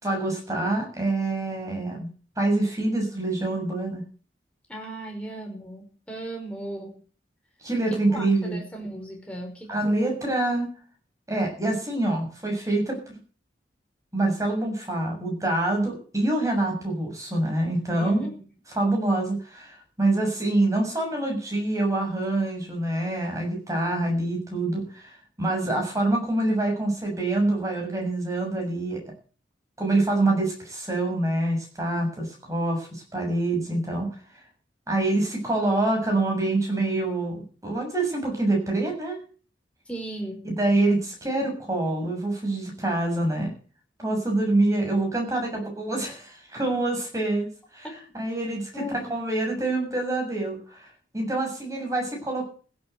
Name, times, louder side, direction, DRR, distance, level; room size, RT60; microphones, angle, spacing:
voice 1, 0.0-2.1 2.4-4.0 7.6-8.6 9.7-10.7 11.3-13.0 14.1-18.3 18.8-29.0 29.8-34.1 34.9-39.2 40.6-43.5 44.0-47.5 47.7-47.9 48.1-50.9 51.1-52.4, right 2 dB, 20° right, 1 dB, 7.2 m, -26 dB
voice 2, 4.7-7.0 7.9-10.2 18.0-18.4 39.9-40.5 47.8-48.0 48.7-49.1, right 1 dB, 5° left, 1 dB, 5.2 m, -36 dB
16.0 x 8.7 x 7.9 m, 0.40 s
head